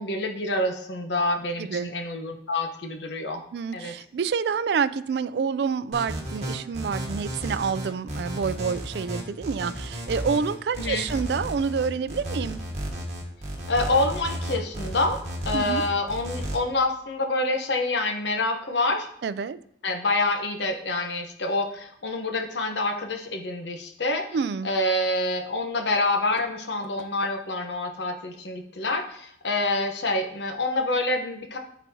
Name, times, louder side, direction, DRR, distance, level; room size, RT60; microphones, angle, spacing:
voice 1, 0.0-3.4 3.7-3.9 10.8-11.0 13.7-15.2 15.4-19.1 19.8-24.2 24.6-31.6, left 2 dB, 75° left, 4 dB, 1.0 m, -27 dB
voice 2, 1.6-1.9 3.5-12.6 15.5-15.8 19.2-19.6 24.3-24.7, right 6 dB, 65° right, 14 dB, 0.3 m, -28 dB
sound 1, 5.9-16.6, equal, 40° right, 1.6 m, -33 dB
11.5 x 4.1 x 2.8 m, 0.66 s
head